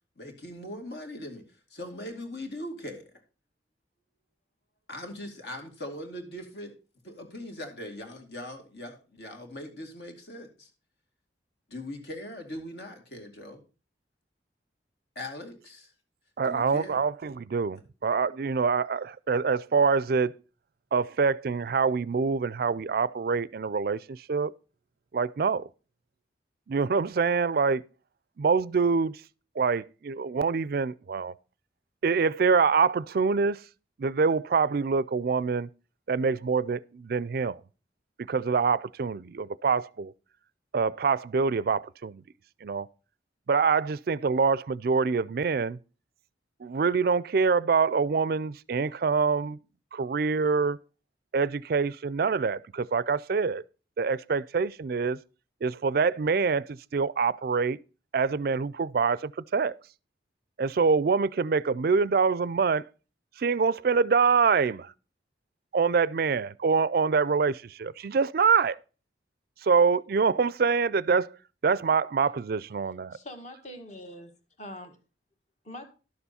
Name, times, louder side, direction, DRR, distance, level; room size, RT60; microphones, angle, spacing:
voice 1, 0.2-1.4 1.7-3.0 4.9-6.8 7.0-10.7 11.7-13.6 15.2-15.9 16.4-17.0, left 1 dB, 65° left, 2.4 m, -40 dB
voice 2, 16.4-20.3 20.9-24.5 25.1-25.7 26.7-27.8 28.4-29.2 29.6-31.3 32.0-33.6 34.0-35.7 36.1-37.6 38.3-40.1 40.7-42.2 42.6-42.9 43.5-45.8 46.6-49.6 49.9-50.8 51.3-53.6 54.0-55.2 55.6-57.8 58.1-59.7 60.6-62.8 63.4-64.9 65.7-68.8 69.6-71.3 71.6-73.2, right 5 dB, 55° right, 0.4 m, -25 dB
voice 3, 73.1-74.3 74.6-74.9 75.6-75.9, left 1 dB, 40° left, 1.6 m, -43 dB
12.0 x 6.9 x 4.2 m
head